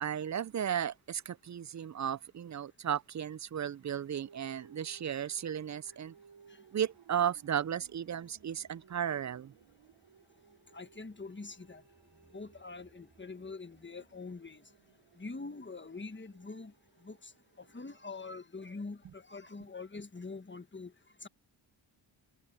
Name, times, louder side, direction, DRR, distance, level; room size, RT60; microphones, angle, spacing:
voice 1, 0.0-6.1 6.7-9.5, right 9 dB, 40° right, 0.4 m, -35 dB
sound 1, 4.1-18.4, right 7 dB, 65° right, 0.9 m, -62 dB
sound 2, 6.6-15.9, right 2 dB, 20° right, 5.3 m, -72 dB
voice 2, 10.7-11.8 12.3-14.6 15.2-16.7 17.0-17.3 17.6-20.9 21.2-21.3, left 3 dB, 25° left, 1.4 m, -44 dB
cardioid pair, 60°, 49 cm